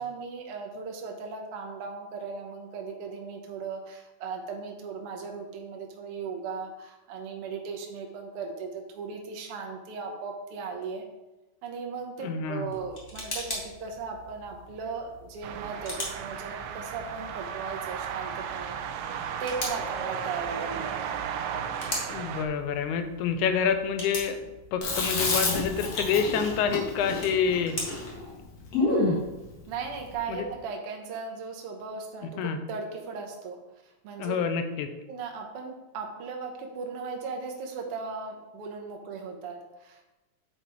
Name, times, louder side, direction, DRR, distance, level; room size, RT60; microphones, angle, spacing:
voice 1, 0.0-11.0 11.6-19.0 19.4-21.1 28.8-29.3 29.7-34.4 35.1-40.0, right 5 dB, 65° right, 2 dB, 1.5 m, -37 dB
voice 2, 12.2-12.8 22.1-24.4 24.7-27.8 30.3-30.5 32.4-32.6 34.2-34.9, left 6 dB, 80° left, 7 dB, 2.0 m, -27 dB
sound 1, 12.6-30.7, left 1 dB, 35° left, 0.8 m, -42 dB
sound 2, 15.4-22.5, right 8 dB, 90° right, 2.3 m, -34 dB
Chewing mastication, 24.8-29.2, left 2 dB, 55° left, 2.7 m, -29 dB
8.9 x 4.4 x 4.5 m, 1.0 s
omnidirectional pair, 3.8 m